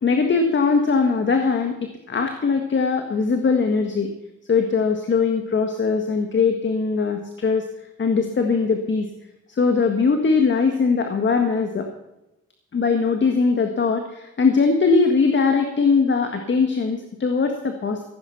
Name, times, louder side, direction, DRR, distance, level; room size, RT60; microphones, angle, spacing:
voice 1, 0.0-1.8 2.1-4.1 4.5-7.7 8.0-9.1 9.5-11.9 12.7-18.0, left 4 dB, 40° left, 5 dB, 1.7 m, -20 dB
16.0 x 9.0 x 5.8 m, 0.92 s
cardioid pair, 90°, 30 cm